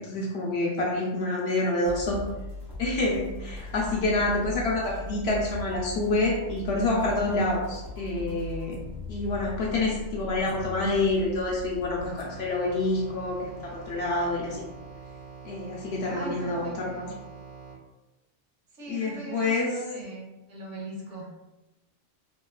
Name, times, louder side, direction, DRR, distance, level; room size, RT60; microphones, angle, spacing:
voice 1, 0.0-2.2 2.8-8.8 9.1-14.6 15.4-17.1 18.9-19.7, left 2 dB, 65° left, -3 dB, 0.8 m, -27 dB
sound 1, 1.8-15.2, left 2 dB, 65° right, 1.2 m, -40 dB
sound 2, 12.0-17.8, right 5 dB, 40° right, 0.6 m, -45 dB
voice 2, 16.0-17.1 18.7-21.4, right 2 dB, 85° right, -3 dB, 1.1 m, -40 dB
2.9 x 2.2 x 2.2 m, 1.0 s
omnidirectional pair, 1.2 m